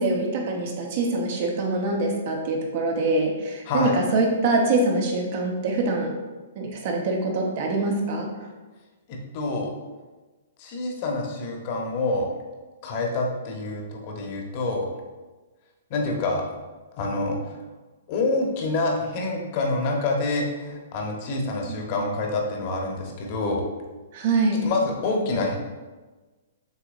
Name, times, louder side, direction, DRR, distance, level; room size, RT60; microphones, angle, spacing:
voice 1, 0.0-6.1 6.6-8.3 21.7-21.8 24.1-24.6, right 2 dB, 50° right, 1 dB, 1.0 m, -24 dB
voice 2, 3.6-4.0 9.1-9.7 10.6-12.3 12.8-14.9 15.9-16.4 16.9-17.4 18.1-23.6 24.6-25.6, left 2 dB, 45° left, 1 dB, 1.0 m, -27 dB
6.6 x 2.9 x 2.6 m, 1.2 s
hypercardioid pair, 130°, 0 cm